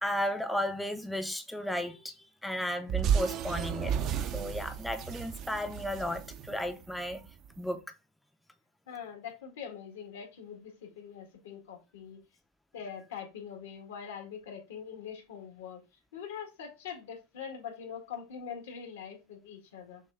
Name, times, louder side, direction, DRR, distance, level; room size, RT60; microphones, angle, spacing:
voice 1, 0.0-3.9 4.3-7.2 7.6-7.8, equal, 5° left, 0.5 m, -34 dB
sound 1, 2.9-7.3, right 8 dB, 45° right, 0.5 m, -32 dB
voice 2, 8.9-12.2 12.7-15.8 16.1-20.0, left 7 dB, 80° left, 1.7 m, -43 dB
6.4 x 2.2 x 3.6 m
hypercardioid pair, 110°, 0 cm